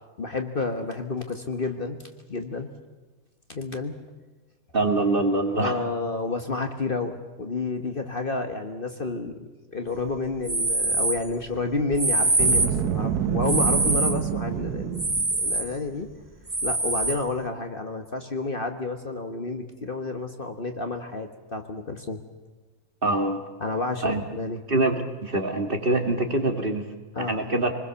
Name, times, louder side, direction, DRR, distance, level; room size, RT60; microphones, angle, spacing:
voice 1, 0.2-2.0 2.3-2.7 3.5-3.9 5.6-16.1 16.6-22.2 23.6-24.6 27.1-27.5, left 3 dB, 35° left, 6 dB, 1.5 m, -30 dB
voice 2, 4.7-5.8 23.0-23.4 24.0-24.2 24.7-27.7, right 2 dB, 35° right, 5 dB, 2.1 m, -24 dB
sound 1, 10.4-11.2 11.9-12.8 13.4-14.2 15.0-15.7 16.5-17.2, right 2 dB, 15° right, 0.9 m, -24 dB
Boom, 12.3-15.4, right 9 dB, 80° right, 1.5 m, -27 dB
26.5 x 20.5 x 7.0 m, 1.3 s
omnidirectional pair, 1.6 m